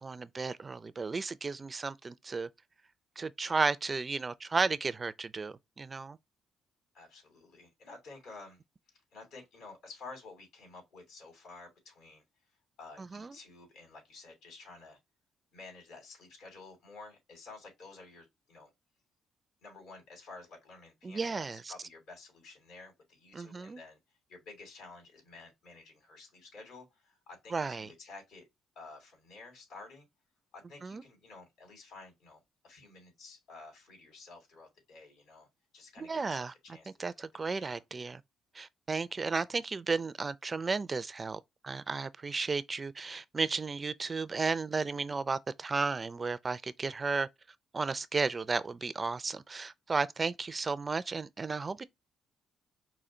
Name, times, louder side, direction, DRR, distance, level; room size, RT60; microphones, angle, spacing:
voice 1, 0.0-2.5 3.2-6.2 13.0-13.3 21.0-21.7 23.3-23.8 27.5-27.9 30.8-31.0 36.0-36.5 37.0-38.2 38.5-47.3 47.7-51.8, right 4 dB, 30° right, 0.4 m, -34 dB
voice 2, 6.9-8.6 9.1-12.2 12.8-15.0 15.5-18.7 19.6-24.0 24.3-28.5 28.7-30.1 30.5-35.5 35.7-37.0 37.4-37.8, left 3 dB, 80° left, 3.1 m, -51 dB
5.0 x 2.3 x 4.3 m
cardioid pair, 90°, 0 cm